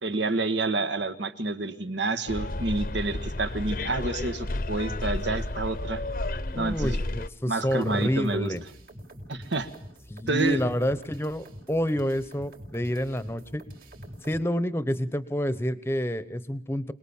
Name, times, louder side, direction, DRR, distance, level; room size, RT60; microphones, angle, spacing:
voice 1, 0.0-6.0 6.5-7.0 7.5-8.5 9.3-9.7 10.3-10.6, right 3 dB, 75° right, 9 dB, 1.5 m, -29 dB
Bus, 2.3-7.3, left 2 dB, 50° left, 0.9 m, -31 dB
voice 2, 6.5-8.6 10.1-13.6 14.2-16.9, equal, 15° left, 14 dB, 0.9 m, -28 dB
sound 1, 7.6-14.4, equal, 55° right, 4.3 m, -45 dB
26.5 x 19.5 x 7.2 m, 0.68 s
head